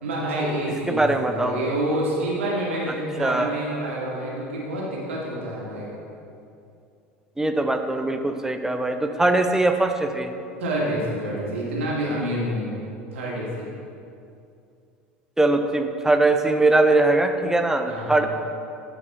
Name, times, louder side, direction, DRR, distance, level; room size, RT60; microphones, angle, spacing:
voice 1, 0.0-5.9 10.6-12.8 13.1-13.7 17.9-18.3, right 1 dB, 70° right, -4 dB, 2.0 m, -28 dB
voice 2, 0.9-1.6 3.2-3.5 7.4-10.3 15.4-18.3, right 2 dB, 5° right, 6 dB, 0.6 m, -21 dB
10.5 x 5.2 x 4.2 m, 2.5 s
figure-of-eight pair, 70°, 7 cm